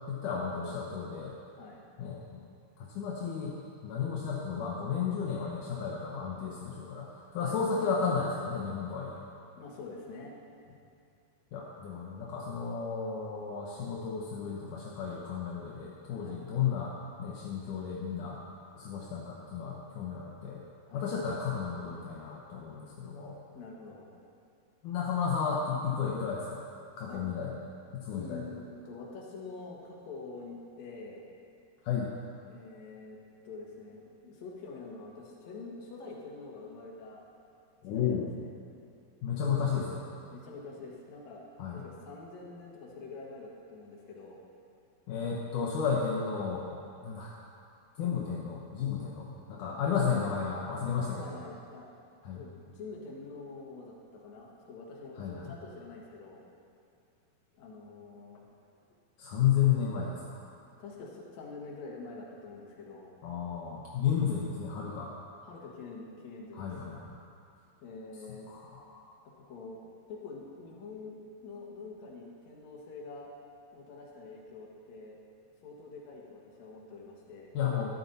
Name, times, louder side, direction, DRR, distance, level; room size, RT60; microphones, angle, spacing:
voice 1, 0.1-1.3 2.0-2.4 2.8-3.6 3.8-7.1 7.3-9.1 11.5-16.9 17.2-18.4 18.8-20.6 20.9-23.3 24.8-26.6 27.0-27.5 27.9-28.4 31.8-32.1 37.8-38.3 39.2-40.0 41.6-41.8 45.1-46.7 47.0-47.3 48.0-51.3 52.2-52.4 55.2-55.5 59.2-60.4 63.2-65.1 66.6-67.1 68.5-69.0 77.5-77.9, left 7 dB, 75° left, -4 dB, 1.9 m, -33 dB
voice 2, 9.6-10.4 16.1-16.4 20.9-21.1 23.5-24.1 27.1-27.3 28.1-31.3 32.5-33.2 33.4-37.2 37.9-38.5 40.3-41.4 41.7-44.4 51.2-51.9 52.3-56.4 57.5-58.4 60.8-63.1 65.4-66.8 67.8-68.5 69.3-69.8 70.1-73.3 73.7-75.2 75.6-77.5, left 3 dB, 55° left, -2 dB, 2.2 m, -46 dB
13.0 x 10.5 x 4.1 m, 2.4 s
omnidirectional pair, 4.8 m